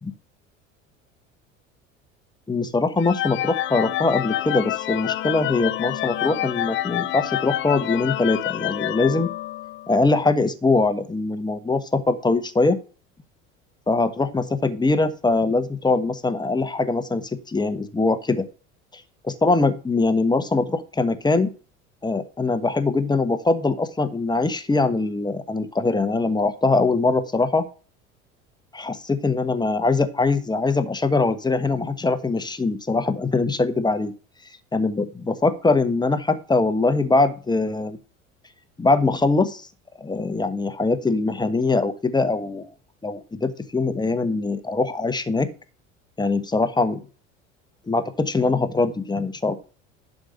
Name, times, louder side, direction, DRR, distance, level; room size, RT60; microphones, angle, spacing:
voice 1, 2.5-9.3 9.9-12.8 13.9-18.4 18.9-21.5 22.0-27.6 28.7-34.1 34.7-38.0 38.8-39.7 40.0-42.7 43.0-45.5 46.2-47.0 47.9-49.6, left 3 dB, 10° left, 10 dB, 1.3 m, -22 dB
sound 1, 3.0-10.0, left 14 dB, 30° left, 0.5 m, -27 dB
11.5 x 5.2 x 6.5 m, 0.37 s
figure-of-eight pair, 70°, 38 cm